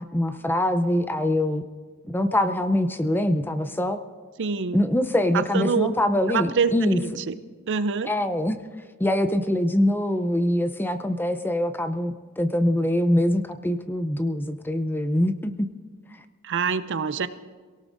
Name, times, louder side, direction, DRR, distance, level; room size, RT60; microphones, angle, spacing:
voice 1, 0.0-1.6 2.1-4.0 4.7-7.0 8.0-8.6 9.0-15.5, left 1 dB, 10° left, 9 dB, 0.6 m, -24 dB
voice 2, 4.4-4.8 5.3-5.9 6.3-6.7 7.3-7.4 7.7-8.1 16.4-17.3, right 5 dB, 55° right, 12 dB, 0.6 m, -25 dB
27.0 x 18.0 x 2.6 m, 1.5 s
head